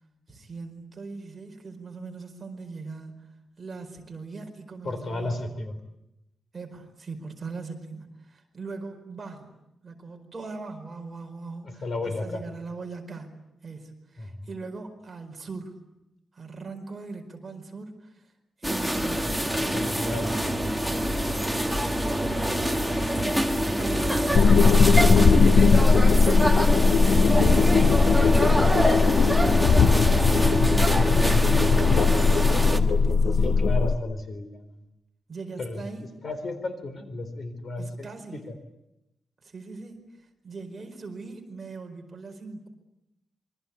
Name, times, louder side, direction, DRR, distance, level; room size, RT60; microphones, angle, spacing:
voice 1, 0.3-5.4 6.5-9.5 9.8-15.7 16.3-18.3 18.6-21.3 21.9-23.5 23.8-33.6 35.3-36.0 37.8-38.4 39.4-42.7, right 3 dB, 25° right, 3 dB, 4.8 m, -40 dB
voice 2, 4.8-5.8 11.6-12.4 14.2-14.5 19.5-20.3 33.4-34.8 35.6-35.8 36.2-38.6, left 2 dB, 45° left, 8 dB, 3.9 m, -33 dB
sound 1, 18.6-32.8, equal, ahead, 1.7 m, -25 dB
sound 2, 24.3-34.0, left 4 dB, 60° left, 0.9 m, -19 dB
28.0 x 24.0 x 8.6 m, 0.88 s
wide cardioid pair, 175°, 0 cm